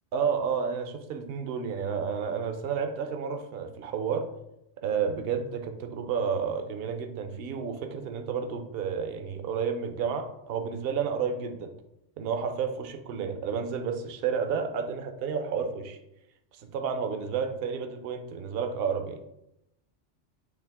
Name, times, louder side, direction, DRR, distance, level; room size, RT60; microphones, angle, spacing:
voice 1, 0.1-4.3 4.8-11.7 12.2-16.0 16.6-19.2, right 6 dB, 60° right, 6 dB, 0.8 m, -31 dB
8.5 x 3.2 x 3.5 m, 0.83 s
omnidirectional pair, 1.2 m